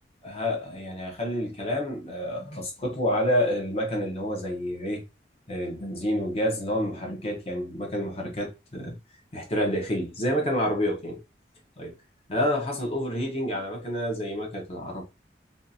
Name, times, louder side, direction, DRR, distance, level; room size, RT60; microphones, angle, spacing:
voice 1, 0.2-5.0 5.5-9.0 9.3-11.2 11.8-11.9 12.3-15.0, equal, 30° left, 0.7 m, -28 dB
2.7 x 2.3 x 2.6 m
head